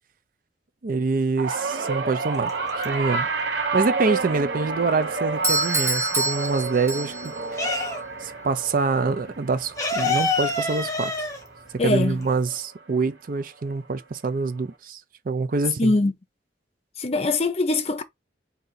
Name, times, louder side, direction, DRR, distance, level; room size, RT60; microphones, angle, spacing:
voice 1, 0.8-2.5 2.8-3.3 3.7-7.8 8.2-11.1 11.8-15.0 15.3-15.9, right 4 dB, 55° right, 0.5 m, -25 dB
sound 1, 1.4-11.8 12.2-12.6 13.7-13.8, right 4 dB, 80° right, 1.0 m, -30 dB
sound 2, 2.4-3.3 3.6-5.6 5.9-8.3 8.6-8.7 9.0-12.6, left 2 dB, 20° left, 1.2 m, -27 dB
Doorbell, 5.4-7.4, right 2 dB, 15° right, 0.9 m, -26 dB
voice 2, 11.8-12.2 15.8-16.1 17.0-18.0, left 2 dB, 35° left, 0.6 m, -22 dB
3.9 x 2.8 x 3.9 m
head